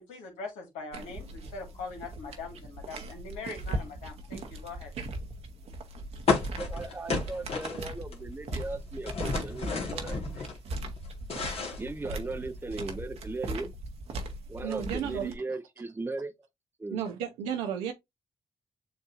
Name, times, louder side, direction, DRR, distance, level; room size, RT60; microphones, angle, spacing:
voice 1, 0.0-4.9, left 3 dB, 85° left, 1.6 m, -42 dB
sound 1, 0.9-15.4, right 2 dB, 65° right, 0.9 m, -39 dB
sound 2, 6.3-8.2 8.4-10.6 11.0-12.5, left 4 dB, 60° left, 1.5 m, -32 dB
voice 2, 6.6-10.5 11.8-13.7 14.5-16.3 16.8-17.0, right 3 dB, 20° right, 0.6 m, -37 dB
voice 3, 14.6-15.3 16.9-17.9, right 9 dB, 90° right, 0.5 m, -33 dB
7.3 x 2.6 x 2.5 m
hypercardioid pair, 45°, 11 cm